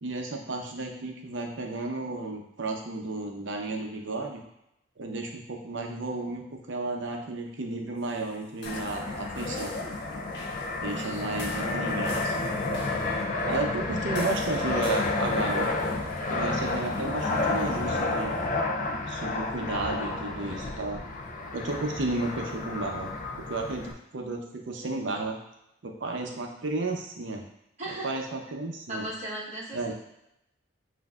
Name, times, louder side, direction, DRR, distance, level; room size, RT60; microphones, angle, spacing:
voice 1, 0.0-4.4 5.0-9.7 10.8-12.5 13.5-15.7 16.3-18.3 19.1-21.0 21.5-25.4 25.8-27.4 28.0-29.1 29.7-29.9, right 2 dB, 60° right, 2 dB, 0.6 m, -33 dB
sound 1, 8.0-18.5, left 1 dB, 55° left, 1.0 m, -47 dB
Fixed-wing aircraft airplane, 8.7-23.9, left 2 dB, 40° left, 0.4 m, -30 dB
voice 2, 10.8-11.3 27.8-28.2 28.9-29.9, right 1 dB, 35° right, -6 dB, 1.1 m, -37 dB
7.6 x 2.6 x 2.3 m, 0.82 s
head